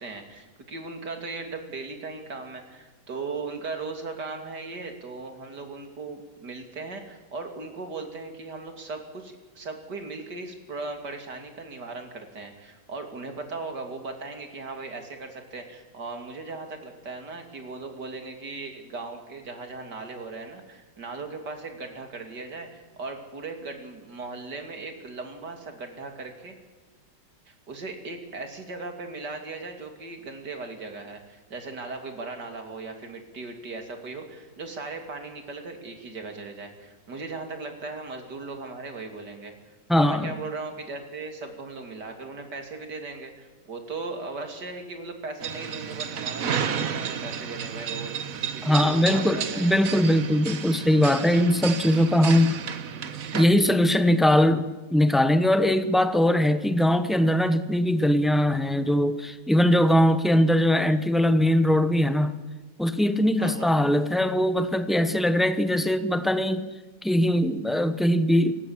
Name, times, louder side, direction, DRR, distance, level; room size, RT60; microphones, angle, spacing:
voice 1, 0.0-26.5 27.5-39.5 39.9-48.2 48.4-49.7 63.4-63.7, right 3 dB, 75° right, 5 dB, 3.5 m, -38 dB
voice 2, 39.9-40.3 48.6-52.6 53.3-62.4 62.8-66.7 67.0-68.5, left 1 dB, ahead, 10 dB, 0.8 m, -21 dB
sound 1, 45.4-53.5, right 7 dB, 55° right, 1.5 m, -32 dB
29.0 x 16.5 x 7.4 m, 1.2 s
omnidirectional pair, 1.8 m